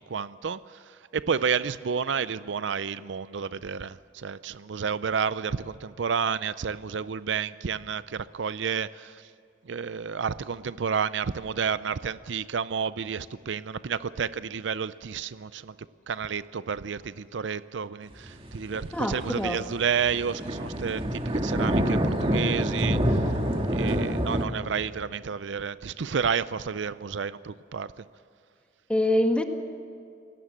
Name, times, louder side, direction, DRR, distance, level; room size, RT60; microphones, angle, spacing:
voice 1, 0.1-0.8 1.1-9.2 9.7-15.7 16.1-23.3 23.7-27.9, right 6 dB, 75° right, 16 dB, 0.5 m, -30 dB
sound 1, 18.3-24.4, equal, 30° right, 1.7 m, -27 dB
voice 2, 18.9-19.6 28.9-29.4, left 1 dB, 5° left, 4 dB, 1.6 m, -24 dB
27.5 x 18.0 x 7.4 m, 2.4 s
head